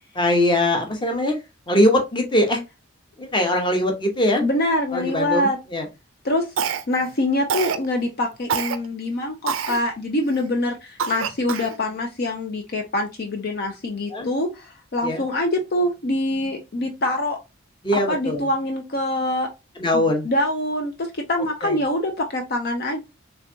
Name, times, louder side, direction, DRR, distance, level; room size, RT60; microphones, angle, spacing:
voice 1, 0.2-1.4 1.7-2.6 3.2-4.4 4.9-5.9 14.1-14.3 15.0-15.2 17.8-18.5 19.8-20.3 21.6-21.8, left 1 dB, 25° left, 0.9 m, -21 dB
voice 2, 4.4-5.6 6.2-6.5 6.9-17.4 17.9-19.5 19.9-23.0, left 1 dB, 50° left, 0.6 m, -24 dB
Cough, 6.6-7.1 7.5-7.9 8.5-8.8 9.5-9.8 10.3-10.4 11.0-11.8, right 7 dB, 85° right, 0.5 m, -26 dB
3.4 x 3.2 x 2.7 m
head